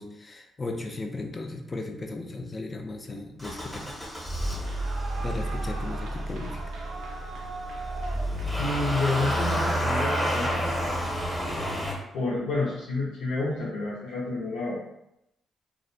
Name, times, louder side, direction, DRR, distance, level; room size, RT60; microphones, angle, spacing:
voice 1, 0.0-3.9 5.2-6.6, left 2 dB, 30° left, 4 dB, 0.4 m, -36 dB
Motor vehicle (road) / Engine starting, 3.4-11.9, equal, 5° left, 0.8 m, -30 dB
Clapping / Cheering / Applause, 4.6-12.0, right 3 dB, 80° right, 0.4 m, -42 dB
voice 2, 8.6-10.7 12.1-14.8, left 3 dB, 85° left, -6 dB, 0.5 m, -29 dB
2.5 x 2.1 x 2.6 m, 0.82 s
cardioid pair, 75°, 0 cm